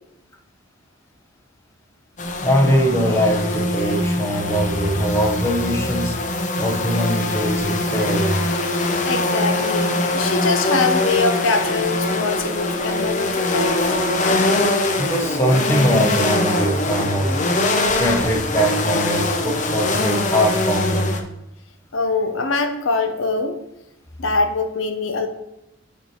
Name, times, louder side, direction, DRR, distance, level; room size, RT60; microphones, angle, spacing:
sound 1, 2.2-21.2, left 2 dB, 40° left, 0.6 m, -22 dB
voice 1, 2.4-6.2 6.6-8.4 14.9-17.3 18.0-21.1, equal, 15° left, 1 dB, 0.8 m, -21 dB
voice 2, 9.1-13.8 21.9-23.6 24.2-25.3, left 3 dB, 75° left, 6 dB, 0.7 m, -23 dB
5.6 x 4.6 x 4.4 m, 0.89 s
head